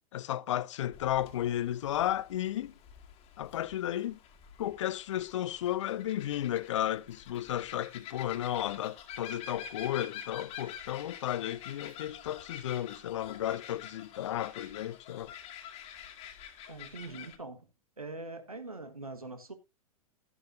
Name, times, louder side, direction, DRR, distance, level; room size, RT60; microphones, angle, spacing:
voice 1, 0.1-2.7 3.4-4.2 4.6-15.3, left 12 dB, 55° left, 0.7 m, -33 dB
sound 1, 0.9-17.4, left 8 dB, 35° left, 1.8 m, -48 dB
voice 2, 16.7-17.7 18.0-19.5, right 2 dB, 85° right, 1.4 m, -43 dB
11.5 x 11.0 x 2.6 m
figure-of-eight pair, 95°, 18 cm